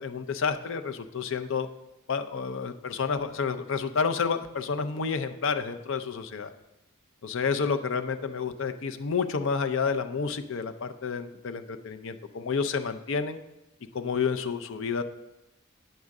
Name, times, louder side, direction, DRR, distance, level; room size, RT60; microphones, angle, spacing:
voice 1, 0.0-1.7 2.1-6.5 7.2-13.4 13.9-15.0, left 5 dB, 60° left, 9 dB, 0.5 m, -30 dB
9.1 x 6.4 x 3.6 m, 0.95 s
head